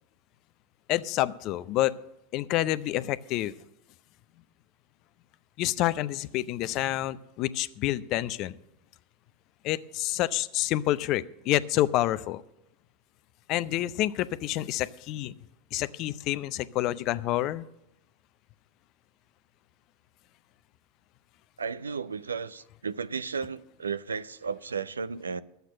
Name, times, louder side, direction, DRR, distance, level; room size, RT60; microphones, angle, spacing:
voice 1, 0.9-1.9 2.3-3.5 5.6-8.6 9.6-12.4 13.5-15.3 15.7-17.6, left 15 dB, 50° left, 0.5 m, -28 dB
voice 2, 21.6-25.4, right 5 dB, 90° right, 0.4 m, -34 dB
11.5 x 8.0 x 7.5 m
hypercardioid pair, 90°, 0 cm